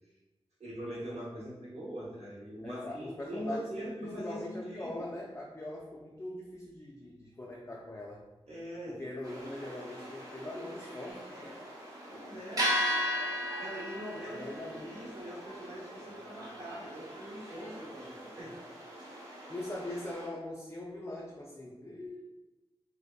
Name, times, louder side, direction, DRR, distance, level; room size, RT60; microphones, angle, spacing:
voice 1, 0.6-5.0 8.5-9.1 12.1-12.7 13.6-18.5, equal, 75° right, -6 dB, 0.8 m, -42 dB
voice 2, 2.6-3.7 4.0-8.2 8.9-11.6 14.3-15.0 19.5-22.2, left 1 dB, 25° left, -4 dB, 0.4 m, -42 dB
sound 1, 9.2-20.3, equal, 35° right, 0.6 m, -38 dB
2.6 x 2.1 x 2.2 m, 1.1 s
wide cardioid pair, 55°, 11 cm